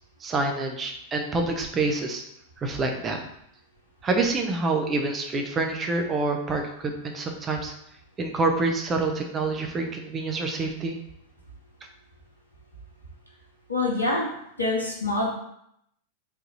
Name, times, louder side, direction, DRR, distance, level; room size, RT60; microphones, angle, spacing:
voice 1, 0.2-2.2 2.6-3.2 4.0-7.7 8.2-11.0, right 3 dB, 25° right, 3 dB, 0.7 m, -27 dB
voice 2, 13.7-14.3 14.6-15.3, left 2 dB, 80° left, -1 dB, 0.9 m, -25 dB
4.0 x 2.7 x 3.9 m, 0.76 s
figure-of-eight pair, 90°, 0 cm